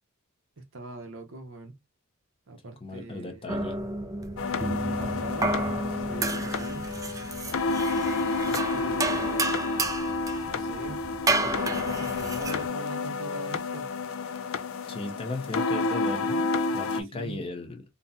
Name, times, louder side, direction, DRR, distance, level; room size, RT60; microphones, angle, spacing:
voice 1, 0.6-1.8 2.5-3.7 4.9-6.9 8.3-9.7 10.4-11.1 11.4-13.9 17.1-17.4, right 2 dB, 60° right, 0.7 m, -42 dB
voice 2, 2.8-3.8 14.9-17.8, left 2 dB, 25° left, 0.7 m, -36 dB
sound 1, 3.5-12.7, right 2 dB, 15° right, 0.3 m, -31 dB
sound 2, 4.4-17.0, left 3 dB, 65° left, 0.5 m, -30 dB
3.9 x 2.2 x 2.6 m
head